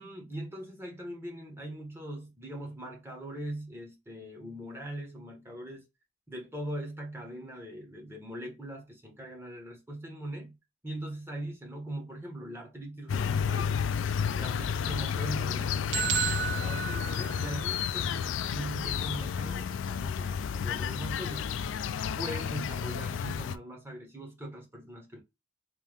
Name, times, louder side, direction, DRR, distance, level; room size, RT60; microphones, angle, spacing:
voice 1, 0.0-5.9 6.3-10.5 10.8-13.8 14.4-21.5 22.2-25.2, right 1 dB, 15° right, 1.2 m, -41 dB
sound 1, 13.1-23.6, left 7 dB, 85° left, 0.3 m, -31 dB
sound 2, 15.9-17.9, right 7 dB, 65° right, 0.5 m, -32 dB
3.4 x 2.8 x 3.4 m
head